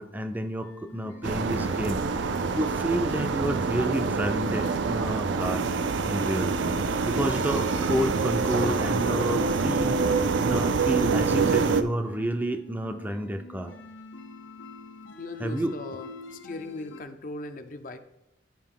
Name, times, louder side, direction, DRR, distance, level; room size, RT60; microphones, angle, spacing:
voice 1, 0.0-5.7 6.1-6.5 7.1-10.0 10.4-13.7 15.4-15.7, right 1 dB, 10° right, 6 dB, 0.4 m, -30 dB
sound 1, 0.6-17.0, left 2 dB, 90° left, 0.8 m, -45 dB
sound 2, 1.2-11.8, right 4 dB, 80° right, 0.5 m, -26 dB
voice 2, 15.2-18.0, left 2 dB, 45° left, 8 dB, 0.5 m, -39 dB
11.5 x 4.9 x 3.7 m, 0.89 s
head